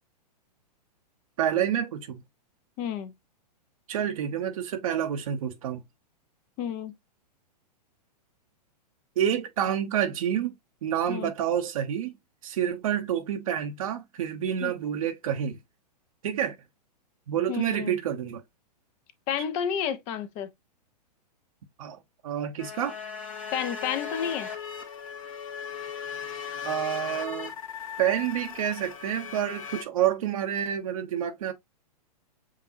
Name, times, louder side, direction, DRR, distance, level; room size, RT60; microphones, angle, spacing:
voice 1, 1.4-2.2 3.9-5.8 9.2-10.5 10.8-12.1 12.4-15.6 16.2-16.5 17.3-18.4 21.8-22.0 22.2-22.9 26.6-27.5 28.0-31.5, right 9 dB, 55° right, 1.0 m, -28 dB
voice 2, 2.8-3.1 6.6-6.9 11.1-11.3 14.6-14.7 17.5-18.0 19.3-20.5 23.5-24.5, left 8 dB, 35° left, 0.8 m, -30 dB
sound 1, 22.6-29.8, left 7 dB, 55° left, 1.4 m, -38 dB
7.4 x 2.6 x 2.7 m
figure-of-eight pair, 110°, 21 cm